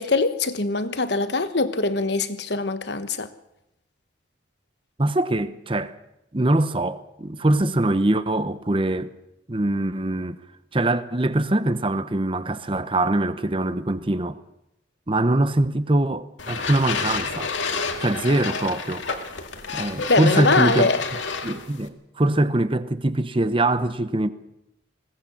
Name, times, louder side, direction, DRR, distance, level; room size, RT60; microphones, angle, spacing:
voice 1, 0.0-3.3 20.1-21.0, left 3 dB, 60° left, 1.2 m, -22 dB
voice 2, 5.0-5.9 6.3-9.1 9.5-10.4 10.7-14.4 15.1-17.5 18.0-19.0 19.7-20.9 21.4-24.3, right 1 dB, 25° right, 0.9 m, -23 dB
sound 1, 16.4-21.9, left 4 dB, 80° left, 1.9 m, -29 dB
21.0 x 17.5 x 7.1 m
head